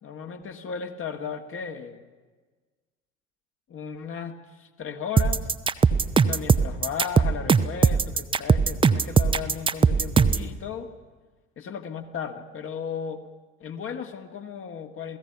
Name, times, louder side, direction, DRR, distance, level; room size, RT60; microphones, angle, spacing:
voice 1, 0.0-2.0 3.7-5.5 6.2-10.9 11.6-13.2 13.6-15.2, left 7 dB, 35° left, 5 dB, 1.8 m, -35 dB
sound 1, 5.2-10.5, right 5 dB, 15° right, 0.7 m, -20 dB
27.5 x 17.0 x 5.9 m, 1.4 s
figure-of-eight pair, 65°, 37 cm